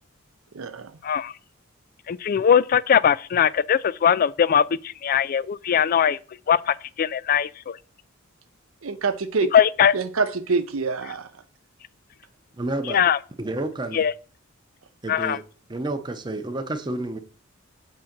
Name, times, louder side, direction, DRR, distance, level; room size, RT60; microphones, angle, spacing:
voice 1, 0.5-1.0 8.8-9.5 9.9-11.4, right 4 dB, 85° right, 0.7 m, -26 dB
voice 2, 2.1-4.6 5.0-6.2 6.5-7.8 9.5-9.9 12.9-13.2 13.9-14.1 15.1-15.4, left 8 dB, 45° left, 0.3 m, -20 dB
voice 3, 12.6-13.0 13.4-14.0 15.0-15.4 15.7-17.2, right 2 dB, 20° right, 0.7 m, -30 dB
7.4 x 3.8 x 5.9 m
head